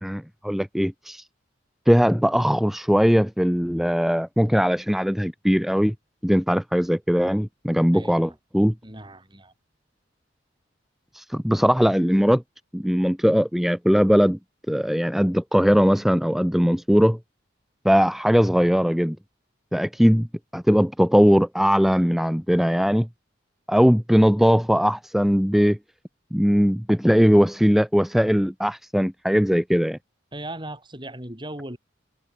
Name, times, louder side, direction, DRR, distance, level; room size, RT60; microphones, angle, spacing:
voice 1, 0.0-1.3 1.9-5.9 6.2-8.7 11.1-12.4 12.7-14.4 14.7-17.2 17.8-19.2 19.7-20.3 20.5-23.1 23.7-25.8 26.3-30.0, equal, ahead, 0.6 m, -20 dB
voice 2, 7.9-8.3 8.8-9.5 20.2-20.3 30.3-31.8, right 1 dB, 25° right, 7.3 m, -37 dB
head